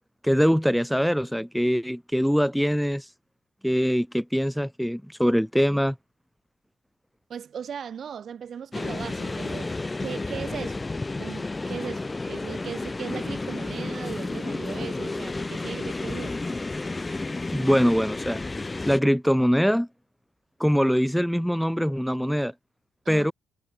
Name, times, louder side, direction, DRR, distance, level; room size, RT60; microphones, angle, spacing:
voice 1, 0.2-3.1 3.6-6.0 17.5-18.4 18.9-19.9 20.6-22.5 23.1-23.3, equal, ahead, 1.0 m, -23 dB
voice 2, 7.3-9.7 10.0-10.8 11.2-16.3 23.1-23.3, right 7 dB, 55° right, 1.9 m, -38 dB
sound 1, 8.7-19.0, left 3 dB, 20° left, 0.3 m, -32 dB
cardioid pair, 90°, 0 cm